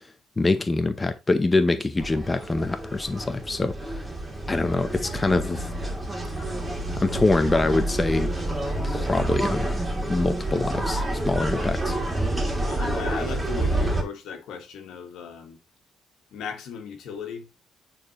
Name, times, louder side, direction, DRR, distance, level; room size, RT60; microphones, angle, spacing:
voice 1, 0.4-3.7 4.5-5.7 7.0-8.3 8.8-9.7 10.1-11.9, left 2 dB, 20° left, 0.7 m, -24 dB
sound 1, 2.0-14.0, right 1 dB, 20° right, 2.5 m, -28 dB
voice 2, 12.6-15.6 16.3-17.5, left 7 dB, 80° left, 1.6 m, -37 dB
9.1 x 4.2 x 3.0 m
cardioid pair, 90°, 0 cm